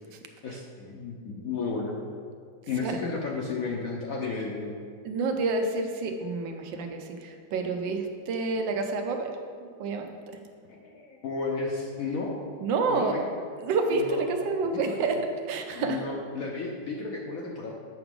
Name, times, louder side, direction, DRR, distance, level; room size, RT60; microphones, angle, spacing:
voice 1, 0.4-2.0 2.7-4.8 10.7-12.4 12.9-13.2 13.9-14.2 14.7-14.9 15.7-17.7, left 4 dB, 65° left, -1 dB, 0.9 m, -33 dB
voice 2, 5.0-9.3 9.8-10.1 12.6-13.2 13.6-15.2 15.5-16.0, right 4 dB, 80° right, 5 dB, 1.4 m, -28 dB
7.9 x 5.9 x 3.7 m, 2.1 s
omnidirectional pair, 2.0 m